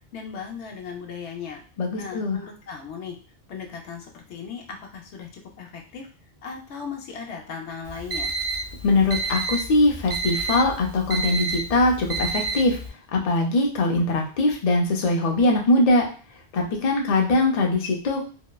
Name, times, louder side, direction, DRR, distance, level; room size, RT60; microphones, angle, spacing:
voice 1, 0.1-1.6 1.9-3.2 3.5-6.1 6.4-8.3, left 6 dB, 85° left, 1 dB, 0.9 m, -37 dB
voice 2, 1.8-2.4 8.8-12.8 13.1-16.1 16.5-18.2, left 2 dB, 45° left, 1 dB, 0.5 m, -21 dB
Alarm, 7.9-12.9, right 3 dB, 55° right, 0.5 m, -29 dB
2.8 x 2.0 x 2.2 m, 0.39 s
omnidirectional pair, 1.1 m